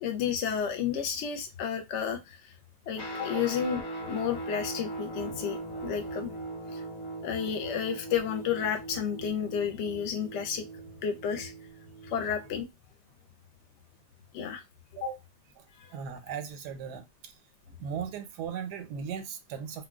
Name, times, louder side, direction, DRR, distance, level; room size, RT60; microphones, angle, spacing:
voice 1, 0.0-2.4 2.9-3.8 4.1-6.3 6.7-6.8 7.2-10.7 11.0-11.5 12.0-12.7 14.3-14.6 15.0-15.1 15.8-15.9, left 8 dB, 75° left, 0.6 m, -31 dB
Guitar, 2.9-12.6, right 2 dB, 50° left, 1.1 m, -40 dB
voice 2, 15.9-17.3 17.8-19.9, right 7 dB, 85° right, 1.2 m, -37 dB
3.6 x 2.2 x 2.3 m
omnidirectional pair, 1.8 m